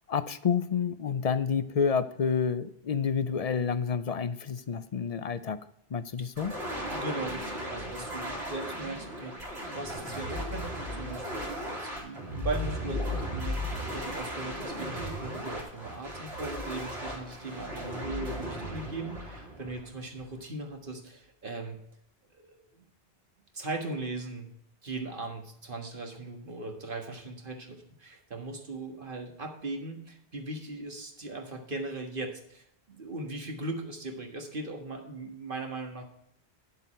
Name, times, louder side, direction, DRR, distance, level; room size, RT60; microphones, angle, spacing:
voice 1, 0.1-5.7 5.9-6.6, left 6 dB, 45° left, 14 dB, 0.5 m, -29 dB
sound 1, 6.4-20.2, equal, 85° right, 3.6 m, -36 dB
voice 2, 6.9-9.5 9.7-21.8 22.4-22.8 23.5-24.5 24.8-36.0, right 2 dB, 55° right, 3 dB, 1.8 m, -39 dB
9.6 x 7.6 x 4.3 m, 0.73 s
omnidirectional pair, 1.1 m